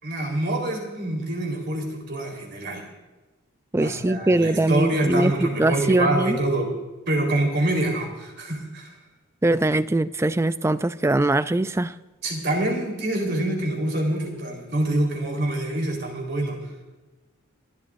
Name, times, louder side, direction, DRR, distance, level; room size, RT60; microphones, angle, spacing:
voice 1, 0.0-2.8 3.8-6.7 7.1-9.0 12.2-16.6, right 1 dB, 50° right, 1 dB, 4.0 m, -26 dB
voice 2, 3.7-6.4 9.4-11.9, right 2 dB, 10° right, 13 dB, 0.3 m, -22 dB
30.0 x 12.0 x 2.6 m, 1.2 s
head